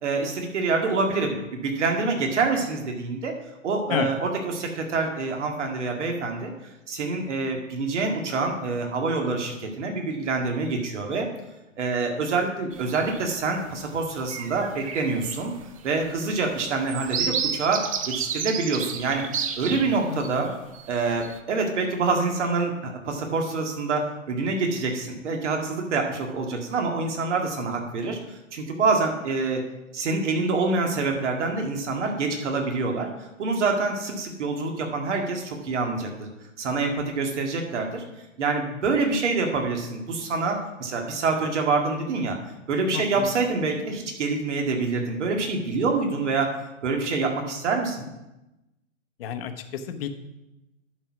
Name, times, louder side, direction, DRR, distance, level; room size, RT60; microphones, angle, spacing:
voice 1, 0.0-3.3 3.6-6.5 6.9-11.3 11.8-15.5 15.8-19.2 19.6-20.5 20.9-29.6 29.9-36.3 36.6-38.0 38.4-42.4 42.7-46.5 46.8-48.1, right 3 dB, 60° right, 2 dB, 2.1 m, -26 dB
sound 1, 12.7-13.3 13.8-14.0 14.2-20.3 20.7-21.4, right 7 dB, 25° right, 0.4 m, -31 dB
voice 2, 19.6-20.3 42.9-43.3 49.2-50.1, left 8 dB, 45° left, 8 dB, 1.1 m, -31 dB
11.0 x 4.6 x 5.9 m, 0.96 s
hypercardioid pair, 140°, 39 cm